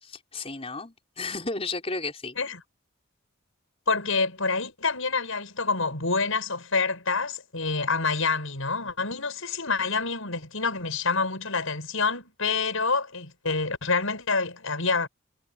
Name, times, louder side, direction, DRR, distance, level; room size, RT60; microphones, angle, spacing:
voice 1, 0.0-2.4, left 3 dB, 30° left, 5.1 m, -33 dB
voice 2, 3.9-15.1, left 4 dB, 75° left, 6.3 m, -27 dB
head